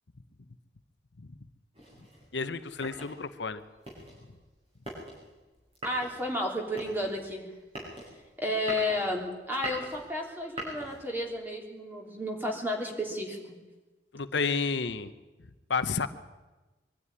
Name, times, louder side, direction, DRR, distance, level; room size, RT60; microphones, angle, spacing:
sound 1, 1.7-11.4, right 1 dB, 30° right, 6.7 m, -43 dB
voice 1, 2.3-3.6 14.1-15.1 15.7-16.1, left 4 dB, 80° left, 10 dB, 0.9 m, -30 dB
voice 2, 5.8-7.4 8.4-13.4, left 1 dB, 10° right, 0 dB, 3.1 m, -32 dB
23.0 x 12.5 x 9.9 m, 1.2 s
head